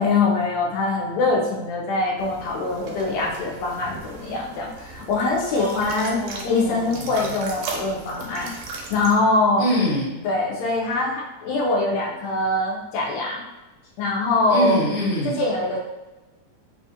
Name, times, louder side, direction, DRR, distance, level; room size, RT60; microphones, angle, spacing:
voice 1, 0.0-6.2 6.4-8.5 8.9-9.7 10.2-13.4 14.0-14.8 15.4-15.8, left 2 dB, 75° left, -3 dB, 1.7 m, -23 dB
sound 1, 2.2-9.2, right 4 dB, 80° right, 2.2 m, -37 dB
voice 2, 5.6-7.3 9.6-10.2 14.5-15.4, left 1 dB, 50° left, -7 dB, 1.6 m, -25 dB
4.9 x 2.4 x 2.8 m, 1.1 s
omnidirectional pair, 3.6 m